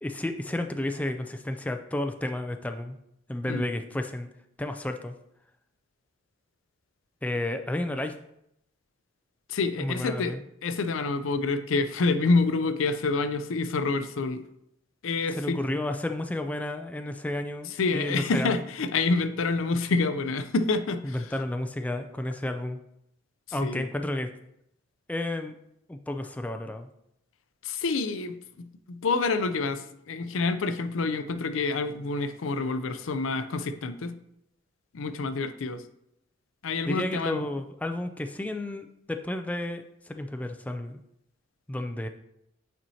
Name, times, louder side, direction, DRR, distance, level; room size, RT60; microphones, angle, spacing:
voice 1, 0.0-3.0 3.3-4.3 4.6-5.1 7.2-8.1 9.8-10.4 15.3-18.6 21.0-22.8 23.5-24.3 25.1-25.6 25.9-26.9 36.9-41.0 41.7-42.1, left 1 dB, 10° left, 6 dB, 0.3 m, -32 dB
voice 2, 9.5-10.4 10.6-14.4 15.0-15.6 17.8-21.3 23.6-23.9 27.6-34.2 34.9-35.8 36.6-37.5, left 3 dB, 80° left, 10 dB, 0.5 m, -27 dB
8.9 x 4.4 x 2.8 m, 0.77 s
head